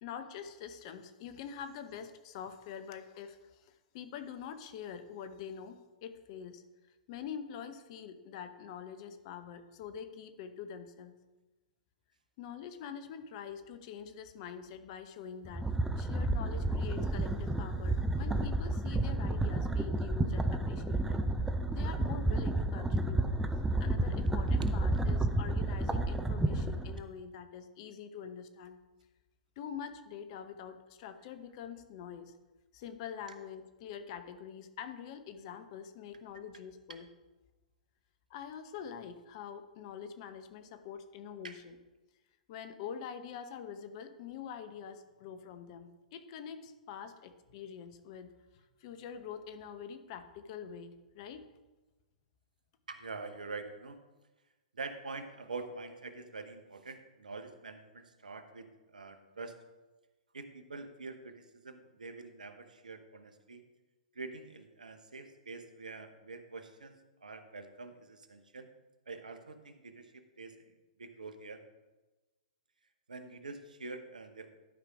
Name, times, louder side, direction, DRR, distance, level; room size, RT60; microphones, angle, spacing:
voice 1, 0.0-6.6 7.1-11.1 12.4-15.7 16.0-21.2 21.7-23.3 23.8-28.8 29.6-32.3 32.7-37.1 38.3-41.8 42.5-48.3 48.8-51.5, left 8 dB, 45° left, 9 dB, 0.8 m, -45 dB
sound 1, 15.4-27.0, right 2 dB, 5° right, 0.6 m, -31 dB
voice 2, 52.9-54.0 54.7-59.6 60.3-63.6 64.1-68.7 69.1-70.1 70.4-70.7 71.0-71.6 73.1-74.5, right 3 dB, 80° right, 8 dB, 1.0 m, -45 dB
12.0 x 5.0 x 4.8 m, 1.1 s
figure-of-eight pair, 110°, 4 cm